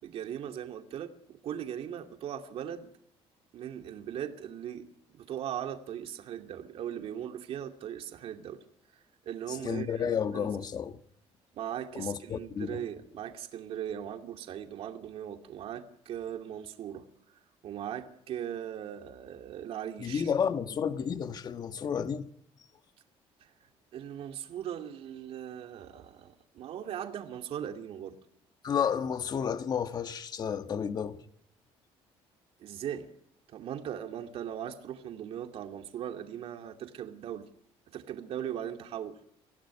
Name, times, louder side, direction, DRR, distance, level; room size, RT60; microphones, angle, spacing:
voice 1, 0.0-2.9 3.5-8.6 9.3-10.5 11.5-17.0 17.6-20.3 23.4-23.5 23.9-28.2 32.6-33.1 33.5-37.5 37.9-39.2, right 10 dB, 60° right, 2.6 m, -39 dB
voice 2, 9.5-11.0 11.9-12.8 20.0-22.3 28.6-31.2, left 7 dB, 40° left, 1.5 m, -31 dB
24.0 x 16.5 x 9.8 m
cardioid pair, 140°, 11 cm